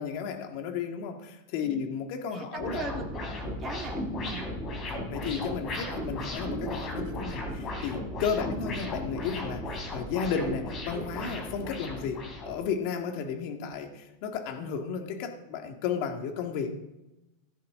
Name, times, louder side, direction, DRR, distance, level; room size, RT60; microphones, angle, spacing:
voice 1, 0.0-3.0 5.1-16.8, left 6 dB, 55° left, 5 dB, 2.0 m, -33 dB
voice 2, 2.3-4.5 8.3-8.4, right 6 dB, 25° right, 1 dB, 2.2 m, -40 dB
sound 1, 2.6-12.7, left 1 dB, 30° left, 3.4 m, -35 dB
16.0 x 15.0 x 3.8 m, 0.96 s
supercardioid pair, 145°, 0 cm